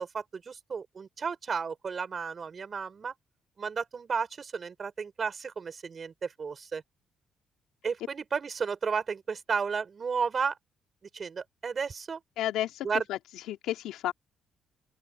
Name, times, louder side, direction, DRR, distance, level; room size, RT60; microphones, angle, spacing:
voice 1, 0.0-3.1 3.6-6.8 7.8-10.6 11.1-12.2 12.8-13.0, right 5 dB, 40° right, 5.9 m, -33 dB
voice 2, 12.4-13.2 13.5-14.1, left 13 dB, 90° left, 2.6 m, -32 dB
open air
cardioid pair, 90°, 0 cm